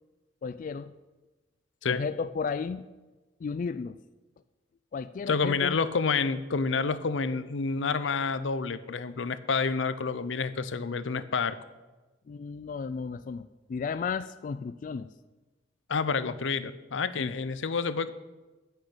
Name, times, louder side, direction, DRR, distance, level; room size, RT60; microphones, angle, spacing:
voice 1, 0.4-0.9 1.9-2.9 3.4-4.0 4.9-5.8 12.3-15.1 17.2-17.4, left 5 dB, 45° left, 13 dB, 0.3 m, -34 dB
voice 2, 5.3-11.6 15.9-18.1, left 5 dB, 85° left, 14 dB, 0.6 m, -29 dB
10.0 x 6.2 x 8.7 m, 1.2 s
head